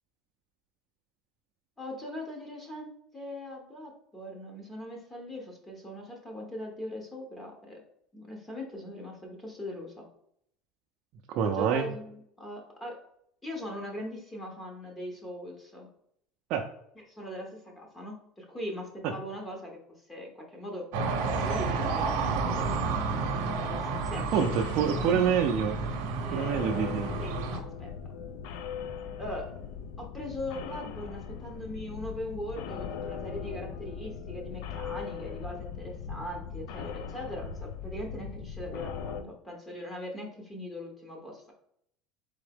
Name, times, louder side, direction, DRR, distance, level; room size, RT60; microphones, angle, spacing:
voice 1, 1.8-7.8 8.1-10.1 11.4-13.0 13.4-15.9 17.1-19.8 20.1-20.9 21.3-22.9 23.6-24.6 24.9-25.2 26.2-26.5 27.2-27.9 29.2-29.5 30.0-41.5, left 1 dB, 15° left, 0 dB, 0.8 m, -40 dB
voice 2, 11.3-11.8 16.5-16.6 24.3-25.8 26.3-27.2, right 7 dB, 55° right, 1 dB, 0.4 m, -26 dB
sound 1, 20.9-27.6, right 4 dB, 75° right, 0.7 m, -31 dB
sound 2, 24.0-39.2, left 6 dB, 75° left, 0.4 m, -40 dB
3.8 x 3.5 x 3.4 m, 0.72 s
cardioid pair, 150°, 0 cm